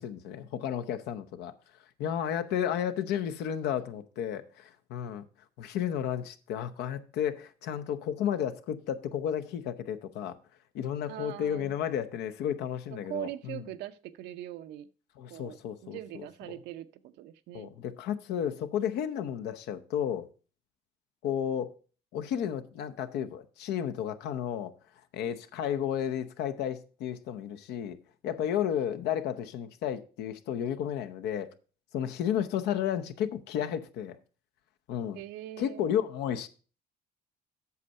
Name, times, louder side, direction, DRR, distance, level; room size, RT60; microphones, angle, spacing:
voice 1, 0.0-1.5 2.0-5.2 5.6-10.4 10.7-13.6 15.2-16.6 17.5-20.3 21.2-21.7 22.1-24.7 25.1-28.0 28.2-31.5 31.9-34.2 34.9-35.2 35.6-36.5, left 9 dB, 80° left, 0.8 m, -32 dB
voice 2, 11.1-11.8 12.9-14.9 15.3-15.6 15.8-17.7 35.1-35.9, right 13 dB, 85° right, 0.7 m, -41 dB
8.4 x 6.5 x 5.4 m
cardioid pair, 110°, 17 cm